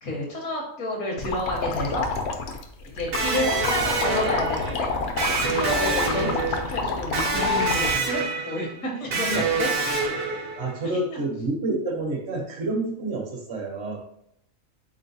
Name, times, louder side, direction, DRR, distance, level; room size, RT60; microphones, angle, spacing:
voice 1, 0.0-2.1 2.8-4.9 5.4-9.7 10.8-11.2, left 1 dB, 80° left, -2 dB, 1.5 m, -30 dB
sound 1, 1.2-7.9, left 4 dB, 60° left, 0.8 m, -29 dB
Electric guitar, 3.1-10.8, right 3 dB, 75° right, 1.2 m, -26 dB
voice 2, 10.6-14.0, right 2 dB, 55° right, 2 dB, 1.0 m, -28 dB
4.1 x 3.8 x 2.6 m, 0.73 s
omnidirectional pair, 1.4 m